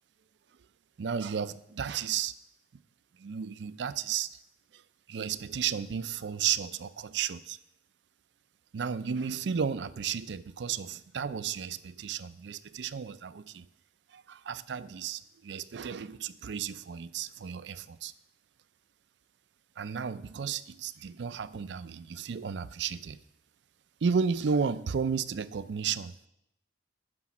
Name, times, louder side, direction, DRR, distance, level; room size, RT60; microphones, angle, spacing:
voice 1, 1.0-2.3 2.7-2.8 3.2-4.4 4.7-4.8 5.1-7.6 8.7-13.7 14.1-18.1 19.8-23.2 24.0-26.1, right 7 dB, 75° right, 16 dB, 0.4 m, -33 dB
9.7 x 6.2 x 6.0 m, 0.82 s
head